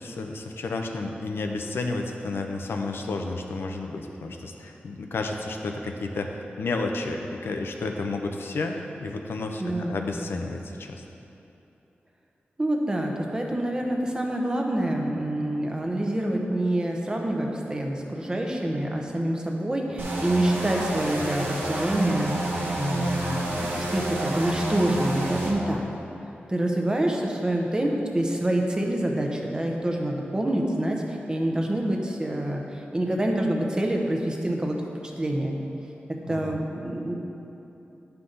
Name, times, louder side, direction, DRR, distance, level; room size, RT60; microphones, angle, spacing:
voice 1, 0.0-6.3 6.6-11.0 36.3-36.6, left 3 dB, 90° left, 3 dB, 0.6 m, -31 dB
voice 2, 9.6-10.0 12.6-25.8 26.5-34.8 35.2-35.6 36.1-37.1, right 1 dB, 20° right, 1 dB, 0.8 m, -27 dB
sound 1, 20.0-25.5, right 1 dB, 80° right, 1.2 m, -29 dB
9.4 x 5.8 x 3.8 m, 3.0 s
wide cardioid pair, 130°, 4 cm